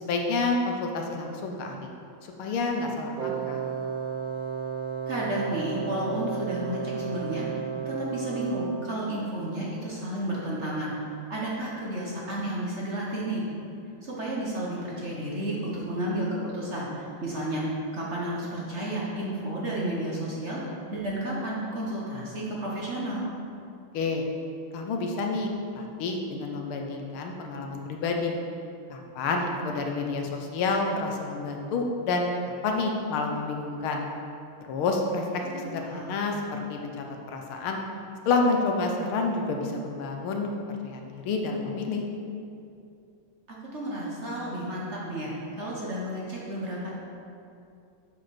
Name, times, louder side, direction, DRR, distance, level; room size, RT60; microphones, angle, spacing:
voice 1, 0.0-1.9 2.4-3.6 23.9-24.2 24.7-28.4 28.9-32.3 32.6-34.0 34.6-37.0 37.3-37.8 38.3-40.5 40.8-42.1, left 3 dB, 85° left, 2 dB, 1.7 m, -29 dB
Wind instrument woodwind instrument, 3.2-8.9, right 7 dB, 70° right, 0.9 m, -33 dB
voice 2, 5.1-13.4 14.0-20.6 20.9-23.3 35.3-36.2 43.5-46.9, right 1 dB, 40° right, -5 dB, 1.2 m, -32 dB
7.5 x 5.1 x 5.9 m, 2.6 s
omnidirectional pair, 2.3 m